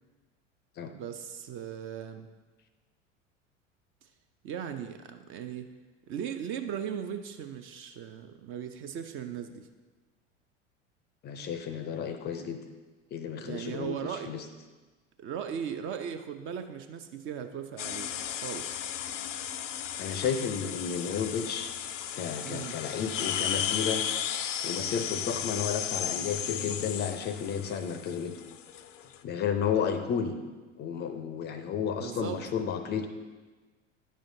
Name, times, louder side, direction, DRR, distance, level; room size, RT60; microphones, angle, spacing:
voice 1, 0.9-2.3 4.0-4.1 4.4-5.7 6.1-9.7 13.3-14.3 15.2-18.1 18.4-18.8 22.4-22.8 26.5-26.7 32.0-32.4, right 8 dB, 35° right, 7 dB, 0.5 m, -38 dB
voice 2, 11.2-12.6 13.1-14.4 20.0-21.7 22.1-24.0 24.6-28.3 29.2-30.4 30.8-33.1, left 7 dB, 30° left, 8 dB, 0.5 m, -32 dB
sound 1, 17.8-29.2, left 9 dB, 75° left, 0.5 m, -35 dB
10.0 x 6.3 x 2.7 m, 1.3 s
figure-of-eight pair, 75°, 38 cm